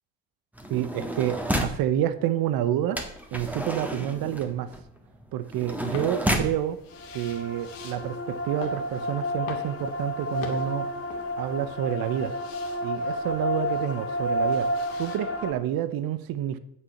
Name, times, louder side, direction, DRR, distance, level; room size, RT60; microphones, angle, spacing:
sound 1, 0.5-1.9 2.9-6.6 7.4-7.5 7.7-8.1, equal, 5° right, 1.8 m, -31 dB
voice 1, 0.7-3.0 3.3-4.7 5.3-6.8 7.1-10.9 11.4-12.3 12.8-14.7 15.0-16.6, right 11 dB, 65° right, 14 dB, 0.8 m, -28 dB
sound 2, 5.7-15.2, left 6 dB, 60° left, 1.9 m, -46 dB
sound 3, 6.9-15.5, equal, 35° left, 1.7 m, -31 dB
9.1 x 6.3 x 5.7 m, 0.78 s
hypercardioid pair, 55°, 38 cm